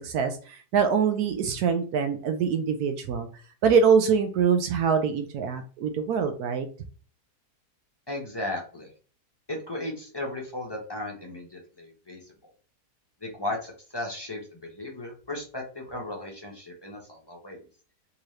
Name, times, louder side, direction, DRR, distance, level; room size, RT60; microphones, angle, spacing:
voice 1, 0.0-3.3 3.6-6.7, right 6 dB, 75° right, 7 dB, 1.0 m, -24 dB
voice 2, 8.1-8.9 9.5-12.2 13.2-17.6, left 1 dB, 25° left, -1 dB, 0.6 m, -35 dB
3.6 x 2.8 x 3.2 m, 0.39 s
omnidirectional pair, 1.7 m